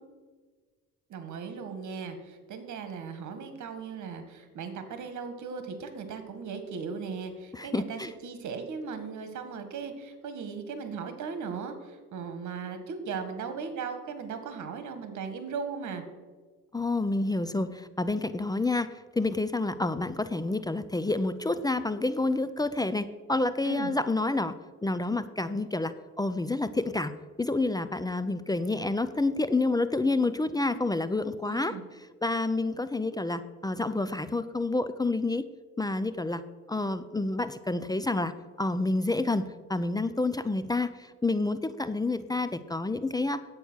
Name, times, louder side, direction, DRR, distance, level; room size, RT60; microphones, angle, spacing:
voice 1, 1.1-16.0 23.6-23.9 31.5-31.8, right 5 dB, 75° right, 9 dB, 1.8 m, -37 dB
voice 2, 7.5-8.1 16.7-18.9 19.2-24.6 24.8-31.8 32.2-35.5 35.8-36.4 36.7-43.4, left 2 dB, 15° left, 13 dB, 0.5 m, -29 dB
9.9 x 8.5 x 6.3 m, 1.4 s
cardioid pair, 90°, 30 cm